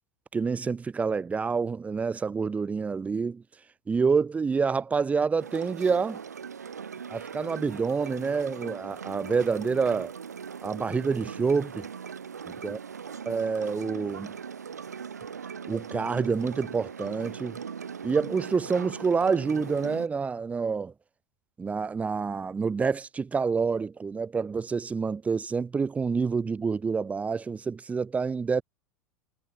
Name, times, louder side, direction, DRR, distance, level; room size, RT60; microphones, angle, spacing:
voice 1, 0.3-3.4 3.9-6.2 7.1-10.1 10.6-11.9 12.5-12.8 13.3-14.3 15.7-17.6 18.0-20.9 21.6-28.6, right 5 dB, 15° right, 0.9 m, -27 dB
sound 1, 5.4-20.1, right 6 dB, 75° right, 0.5 m, -40 dB
figure-of-eight pair, 80°, 9 cm